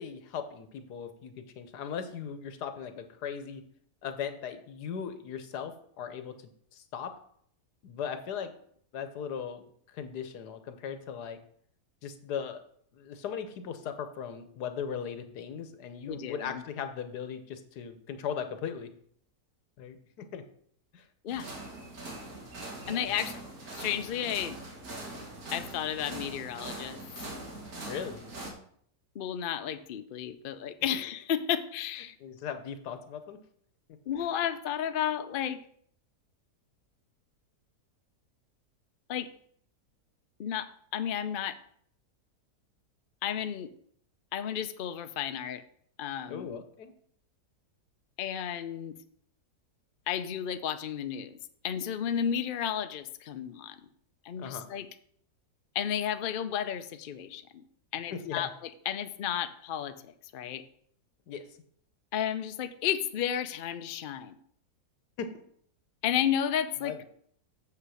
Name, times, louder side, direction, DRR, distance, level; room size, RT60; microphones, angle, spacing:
voice 1, 0.0-3.6 4.0-7.1 7.8-8.5 8.9-9.6 9.9-11.4 12.0-12.6 12.9-18.9 19.8-20.4 20.9-21.1 22.8-23.1 27.9-28.2 32.2-33.4 46.3-46.9 54.4-54.7 58.1-58.5 61.3-61.6 65.2-65.3 66.8-67.0, left 7 dB, 90° left, 9 dB, 1.5 m, -38 dB
voice 2, 16.1-16.6 21.2-21.5 22.9-23.4 23.7-24.6 25.5-27.0 29.1-32.1 34.1-35.6 39.1-39.3 40.4-41.6 43.2-43.7 44.3-45.6 46.0-46.6 48.2-48.9 50.1-51.4 51.6-53.8 54.2-54.9 55.7-57.6 57.9-58.5 58.9-60.6 62.1-64.4 66.0-67.0, left 9 dB, 70° left, 10 dB, 0.5 m, -32 dB
sound 1, 21.3-28.5, right 2 dB, 65° right, 2.2 m, -42 dB
7.0 x 5.7 x 6.3 m, 0.64 s
omnidirectional pair, 1.7 m